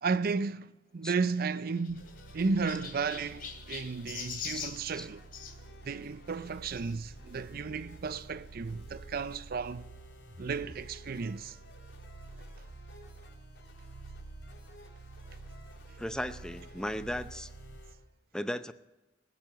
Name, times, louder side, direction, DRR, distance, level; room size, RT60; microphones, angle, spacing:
voice 1, 0.0-5.2 5.8-9.9 10.4-11.6, right 4 dB, 55° right, 0.5 m, -33 dB
Chirp tweet, 1.3-5.6 6.7-6.9 7.6-7.7 7.9-8.0 9.3-9.4, left 7 dB, 50° left, 2.8 m, -43 dB
sound 1, 1.9-18.0, right 3 dB, 90° right, 3.2 m, -50 dB
sound 2, 2.0-17.9, left 2 dB, 85° left, 3.5 m, -57 dB
voice 2, 16.0-17.5 18.3-18.7, equal, 5° left, 0.6 m, -36 dB
20.0 x 7.5 x 8.0 m
head